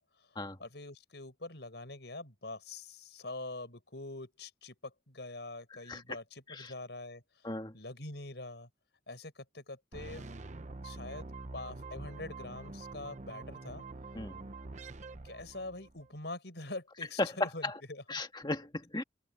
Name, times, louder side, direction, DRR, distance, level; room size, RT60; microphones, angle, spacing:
voice 1, 0.0-7.5 7.7-8.7 9.1-10.3 10.8-13.9 15.2-18.0, left 2 dB, 70° left, 5.8 m, -45 dB
sound 1, 9.9-16.1, right 3 dB, 40° right, 0.8 m, -46 dB
voice 2, 17.2-17.7 18.1-19.0, left 2 dB, 25° left, 1.7 m, -35 dB
open air
head